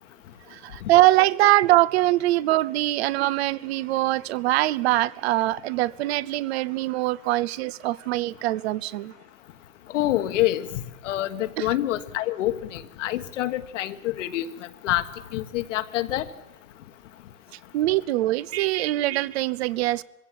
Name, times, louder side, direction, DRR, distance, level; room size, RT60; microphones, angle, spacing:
voice 1, 0.5-9.1 11.6-11.7 17.7-20.0, right 16 dB, 50° right, 0.8 m, -23 dB
voice 2, 9.9-14.5 14.8-15.1 15.3-16.3, left 14 dB, 65° left, 1.6 m, -26 dB
21.5 x 16.5 x 9.1 m
supercardioid pair, 145°, 40 cm